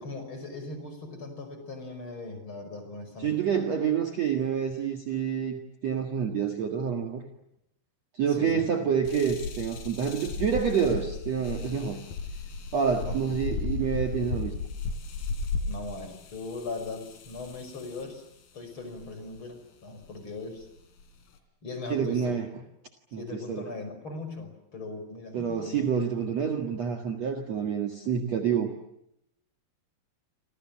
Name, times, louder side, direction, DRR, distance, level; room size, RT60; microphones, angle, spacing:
voice 1, 0.0-3.4 8.3-8.7 13.1-13.4 15.7-18.2 18.5-20.7 21.6-22.4 23.1-25.9 26.3-26.6, left 3 dB, 30° left, 8 dB, 5.9 m, -39 dB
voice 2, 3.2-7.2 8.1-12.0 12.7-14.5 21.9-22.5 23.1-23.6 25.3-28.7, right 7 dB, 50° right, 4 dB, 2.4 m, -28 dB
sound 1, 9.1-18.2 19.0-19.4 20.0-20.1 20.6-21.4, left 4 dB, 65° left, 4.8 m, -35 dB
29.0 x 26.5 x 7.5 m, 0.79 s
omnidirectional pair, 4.8 m